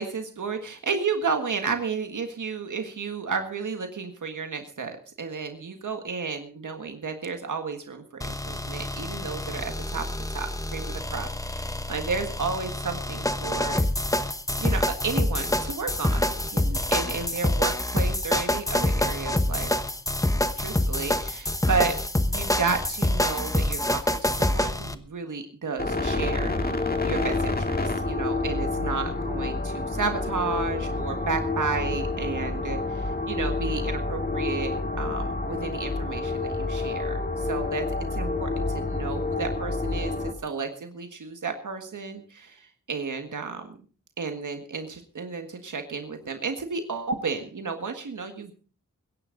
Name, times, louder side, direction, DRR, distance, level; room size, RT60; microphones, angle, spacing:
voice 1, 0.0-10.0 10.3-13.9 14.6-19.7 20.6-22.0 22.3-37.8 38.2-43.8 44.2-48.5, right 5 dB, 75° right, 6 dB, 1.6 m, -32 dB
sound 1, 8.2-25.0, left 1 dB, 10° left, 1.0 m, -26 dB
sound 2, 25.8-40.3, left 3 dB, 30° left, 1.9 m, -28 dB
22.5 x 10.5 x 3.9 m, 0.39 s
wide cardioid pair, 105°, 31 cm